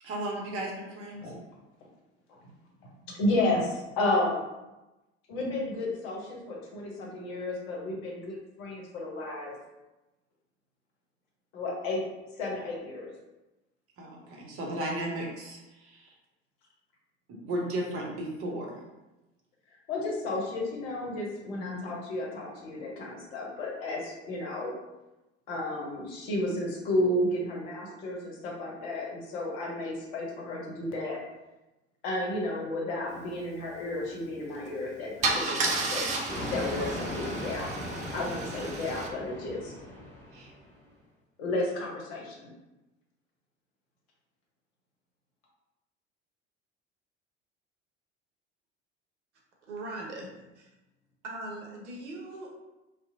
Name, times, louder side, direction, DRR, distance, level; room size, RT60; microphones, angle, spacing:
voice 1, 0.0-1.3 14.0-16.1 17.3-18.8 21.5-21.9 40.3-40.5, right 1 dB, 40° right, -1 dB, 0.8 m, -35 dB
voice 2, 3.2-4.4 5.3-9.5 11.5-12.0 12.4-13.1 19.9-24.7 25.5-31.2 32.0-37.7 38.1-39.7 41.4-42.5, left 1 dB, 55° left, -2 dB, 0.8 m, -32 dB
Car / Engine starting / Idling, 34.5-34.7 35.2-39.1, right 3 dB, 20° right, 0.4 m, -32 dB
sound 1, 36.3-40.8, left 1 dB, 5° left, 1.3 m, -38 dB
voice 3, 49.7-50.7 51.2-52.5, right 2 dB, 70° right, -1 dB, 0.7 m, -40 dB
2.7 x 2.1 x 2.6 m, 1.0 s
figure-of-eight pair, 70°, 36 cm